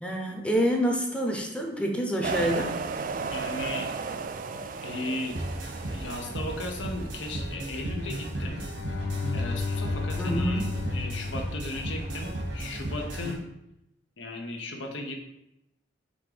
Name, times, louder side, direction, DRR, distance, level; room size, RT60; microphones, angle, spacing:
voice 1, 0.0-2.8 10.2-10.8, equal, 5° left, 2 dB, 0.7 m, -27 dB
sound 1, 2.2-7.2, right 4 dB, 45° right, 0.3 m, -34 dB
voice 2, 3.3-3.9 4.8-5.4 5.8-8.6 9.3-10.6 10.9-13.4 14.2-15.2, left 2 dB, 85° left, 2 dB, 1.0 m, -36 dB
sound 2, 5.3-13.3, right 1 dB, 90° right, 1.4 m, -35 dB
Bowed string instrument, 8.5-12.4, left 4 dB, 70° left, 0.4 m, -33 dB
5.3 x 3.6 x 5.0 m, 0.86 s
head